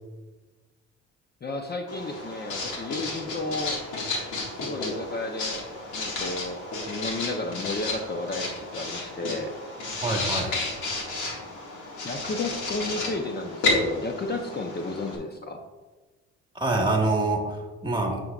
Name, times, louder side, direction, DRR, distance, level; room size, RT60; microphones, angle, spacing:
voice 1, 1.4-3.8 4.5-5.7 5.9-6.6 6.9-9.5 12.0-15.6, left 2 dB, 35° left, 4 dB, 0.7 m, -33 dB
Writing, 1.9-15.2, left 2 dB, 90° left, 2.0 m, -32 dB
voice 2, 10.0-10.5 16.5-18.2, right 2 dB, 15° right, 1 dB, 1.7 m, -25 dB
9.3 x 6.8 x 2.4 m, 1.2 s
cardioid pair, 90°, 30 cm